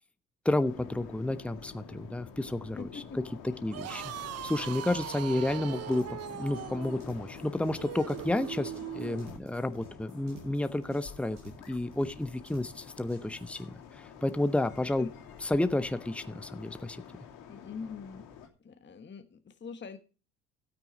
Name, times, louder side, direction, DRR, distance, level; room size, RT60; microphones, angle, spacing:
voice 1, 0.4-2.9 3.4-4.1 4.4-6.0 6.4-11.4 11.7-15.1 15.4-17.0, left 1 dB, 5° left, 10 dB, 1.1 m, -31 dB
sound 1, 0.6-18.5, left 7 dB, 75° left, 2.9 m, -48 dB
voice 2, 2.8-3.2 15.0-15.1 17.5-18.3 18.6-20.0, left 5 dB, 30° left, 8 dB, 1.3 m, -43 dB
sound 2, 3.6-9.3, right 12 dB, 45° right, 0.6 m, -40 dB
sound 3, 4.9-13.6, right 3 dB, 85° right, 6.8 m, -55 dB
13.5 x 9.0 x 4.1 m, 0.34 s
hypercardioid pair, 60°, 36 cm